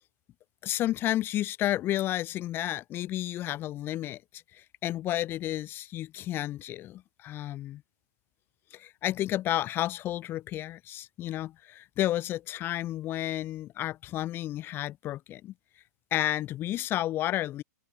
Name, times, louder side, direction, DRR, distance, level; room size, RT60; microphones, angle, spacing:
voice 1, 0.6-7.8 8.7-15.5 16.1-17.6, left 14 dB, 25° left, 1.1 m, -31 dB
open air
hypercardioid pair, 150°, 9 cm